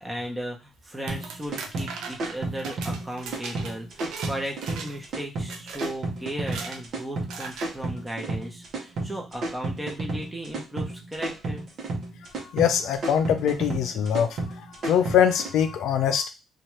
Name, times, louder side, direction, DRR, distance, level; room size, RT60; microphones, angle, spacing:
voice 1, 0.0-11.7, right 1 dB, 15° right, 0 dB, 0.9 m, -36 dB
sound 1, 0.9-4.3 4.6-5.1 5.5-5.9 6.4-6.8 7.3-7.7, right 5 dB, 85° right, 0.4 m, -38 dB
sound 2, 1.1-15.5, right 2 dB, 60° right, 0.9 m, -32 dB
voice 2, 12.5-14.3 14.8-16.3, left 8 dB, 80° left, 8 dB, 0.4 m, -22 dB
2.8 x 2.4 x 3.1 m, 0.27 s
cardioid pair, 90°, 0 cm